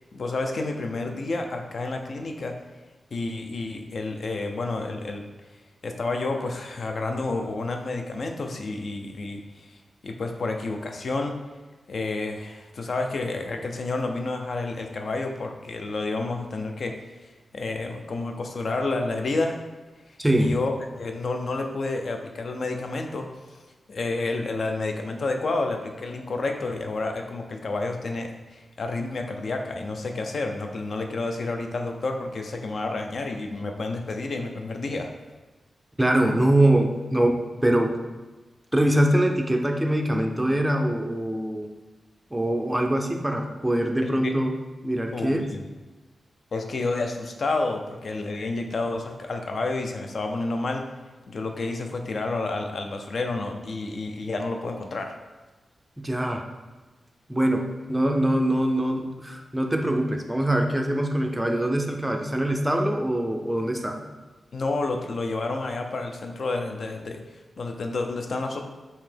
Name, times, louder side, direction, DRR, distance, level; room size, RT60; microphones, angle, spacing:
voice 1, 0.1-2.5 3.1-5.3 5.8-11.3 11.9-16.9 17.2-19.6 20.1-23.6 23.9-35.1 45.1-45.6 46.5-50.8 51.3-55.1 64.5-68.6, left 3 dB, 55° left, 4 dB, 0.5 m, -30 dB
voice 2, 20.2-20.6 36.0-38.0 38.7-41.7 42.3-44.5 44.8-45.4 56.0-56.5 57.3-64.0, right 1 dB, 10° right, 3 dB, 0.4 m, -23 dB
5.5 x 2.8 x 3.4 m, 1.2 s
wide cardioid pair, 150°, 0 cm